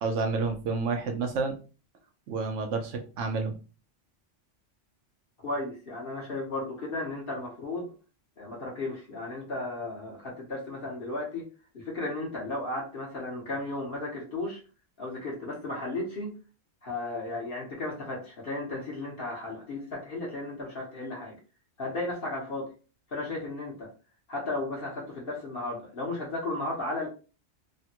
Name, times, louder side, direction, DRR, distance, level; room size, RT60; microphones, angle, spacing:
voice 1, 0.0-1.6 2.3-3.5, right 4 dB, 80° right, 5 dB, 1.0 m, -29 dB
voice 2, 5.4-7.9 8.4-11.5 11.7-14.6 15.0-16.3 16.8-21.4 21.8-22.7 23.1-23.9 24.3-27.1, left 2 dB, 50° left, -3 dB, 1.1 m, -34 dB
3.2 x 2.2 x 2.8 m, 0.35 s
omnidirectional pair, 1.2 m